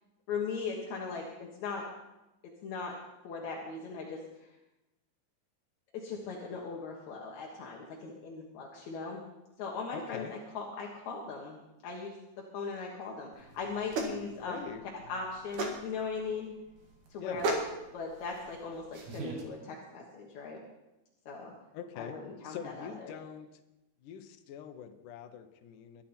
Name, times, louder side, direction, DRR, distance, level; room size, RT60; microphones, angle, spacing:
voice 1, 0.3-1.8 2.6-3.0 3.2-4.5 5.9-9.2 9.6-11.6 11.8-12.2 12.5-14.7 15.1-16.5 17.1-17.6 17.9-20.6 21.3-21.5 22.0-23.1, left 4 dB, 60° left, -1 dB, 2.0 m, -39 dB
voice 2, 9.9-10.3 14.5-14.8 17.2-17.4 21.7-22.2 22.4-23.6 24.0-26.0, left 8 dB, 75° left, 7 dB, 1.9 m, -44 dB
sound 1, 13.3-19.4, right 2 dB, 55° right, 2.8 m, -38 dB
22.0 x 11.0 x 4.4 m, 0.97 s
omnidirectional pair, 5.2 m